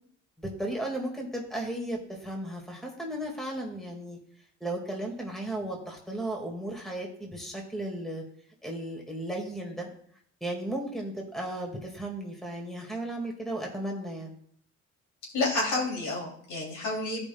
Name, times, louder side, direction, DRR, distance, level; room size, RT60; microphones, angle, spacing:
voice 1, 0.4-4.2 4.6-8.2 8.6-9.9 10.4-14.3, right 1 dB, ahead, 0 dB, 2.0 m, -35 dB
voice 2, 15.3-17.3, left 2 dB, 75° left, -3 dB, 3.0 m, -29 dB
15.0 x 5.3 x 2.3 m, 0.62 s
cardioid pair, 90°, 30 cm